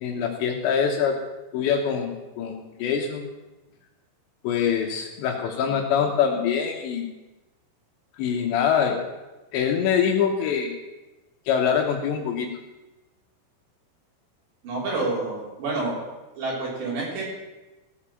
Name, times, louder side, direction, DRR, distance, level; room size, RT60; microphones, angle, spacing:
voice 1, 0.0-1.2 1.5-3.2 4.4-7.1 8.2-9.0 9.5-10.8 11.5-12.5, left 7 dB, 75° left, 2 dB, 2.9 m, -24 dB
voice 2, 14.6-16.0 16.4-17.2, right 3 dB, 60° right, -5 dB, 5.5 m, -28 dB
16.0 x 6.6 x 7.3 m, 1.1 s
omnidirectional pair, 5.7 m